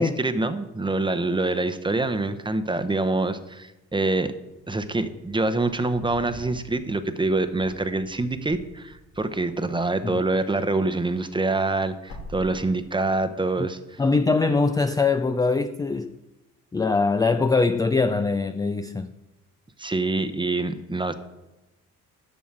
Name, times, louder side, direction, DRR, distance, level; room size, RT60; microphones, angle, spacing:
voice 1, 0.0-4.3 4.7-14.0 19.8-21.1, right 2 dB, 15° right, 0.8 m, -25 dB
Wind / Car, 4.6-10.4 10.7-13.2, left 1 dB, 80° left, 1.8 m, -46 dB
voice 2, 14.0-16.2 16.7-19.1, left 4 dB, 10° left, 0.3 m, -22 dB
7.3 x 6.2 x 6.0 m
supercardioid pair, 60°, 37 cm